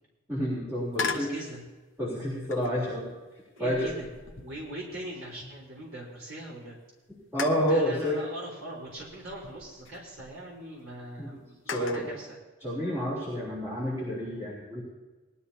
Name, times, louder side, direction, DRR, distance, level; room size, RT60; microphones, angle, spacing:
voice 1, 0.3-1.3 2.0-3.1 3.6-3.9 7.3-8.2 11.2-11.3 11.7-12.1 12.6-14.8, equal, 10° right, -7 dB, 3.6 m, -29 dB
sound 1, 0.9-1.4 2.5-2.9 3.6-5.9 6.3-6.4 7.4-7.8 9.0-10.3 11.7-12.1, left 5 dB, 70° left, 1.0 m, -38 dB
voice 2, 1.0-1.6 3.6-6.8 7.7-12.4, right 1 dB, 90° right, -5 dB, 4.0 m, -41 dB
19.5 x 12.5 x 2.8 m, 1.2 s
head